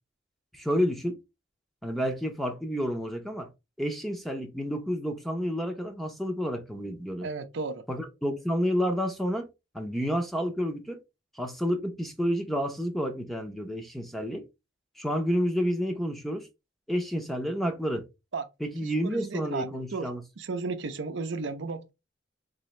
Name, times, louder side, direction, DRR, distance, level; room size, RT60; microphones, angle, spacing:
voice 1, 0.5-1.2 1.8-3.5 3.8-7.3 7.9-9.5 9.7-11.0 11.4-14.4 15.0-16.5 16.9-18.1 18.6-20.2, equal, ahead, 0.7 m, -30 dB
voice 2, 7.2-7.8 18.3-18.5 18.8-21.9, right 4 dB, 70° right, 0.6 m, -34 dB
3.9 x 2.7 x 3.1 m
head